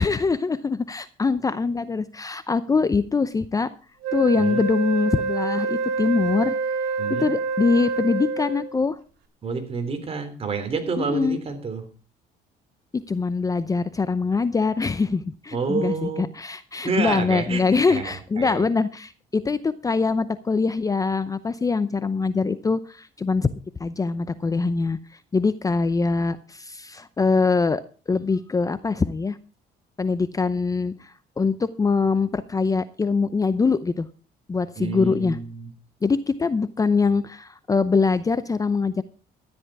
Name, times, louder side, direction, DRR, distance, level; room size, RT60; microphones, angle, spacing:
voice 1, 0.0-3.7 4.1-6.5 7.2-9.0 11.0-11.4 12.9-23.5 23.8-25.0 25.3-27.8 28.1-29.4 30.0-34.1 34.5-35.4 36.0-39.0, left 4 dB, 20° left, 13 dB, 0.6 m, -23 dB
Wind instrument woodwind instrument, 4.0-8.8, right 4 dB, 85° right, 2.9 m, -27 dB
voice 2, 9.4-11.8 15.5-16.3 16.8-17.6 17.9-18.7 34.8-35.7, right 4 dB, 35° right, 7 dB, 3.3 m, -28 dB
13.0 x 10.5 x 4.7 m, 0.37 s
cardioid pair, 110°, 17 cm